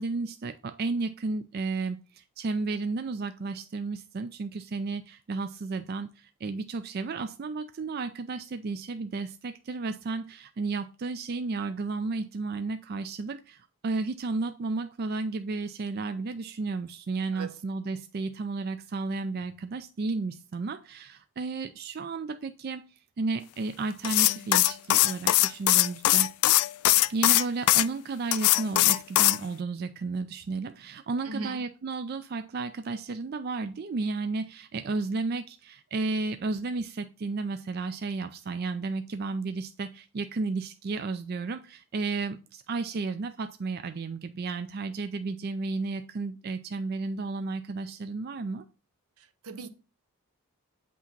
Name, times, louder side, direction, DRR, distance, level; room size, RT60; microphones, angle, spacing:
voice 1, 0.0-22.8 23.2-26.3 27.1-48.6, right 3 dB, 45° right, 0.3 m, -33 dB
sound 1, 24.0-27.9 28.3-29.4, left 17 dB, 80° left, 0.3 m, -21 dB
voice 2, 31.2-31.7 49.2-49.7, right 3 dB, 80° right, 0.7 m, -38 dB
8.3 x 2.9 x 5.7 m
head